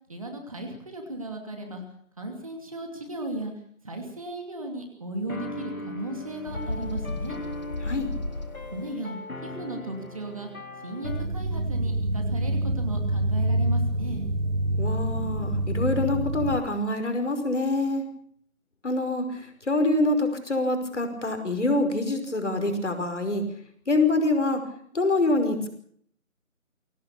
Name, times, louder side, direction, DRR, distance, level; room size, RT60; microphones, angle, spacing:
voice 1, 0.1-1.8 2.2-3.5 3.8-7.4 8.7-9.2 9.4-10.5 10.8-14.2, right 1 dB, 25° right, 3 dB, 2.6 m, -36 dB
sound 1, 5.3-11.3, left 2 dB, 80° left, 3.1 m, -39 dB
Bird, 6.5-8.9, left 2 dB, 30° left, 1.7 m, -33 dB
sound 2, 11.0-16.6, right 1 dB, 70° right, 2.8 m, -26 dB
voice 2, 14.8-18.1 18.8-23.4 23.9-24.6 24.9-25.7, left 2 dB, 55° left, 6 dB, 5.3 m, -25 dB
22.5 x 17.5 x 6.9 m, 0.64 s
figure-of-eight pair, 175°, 42 cm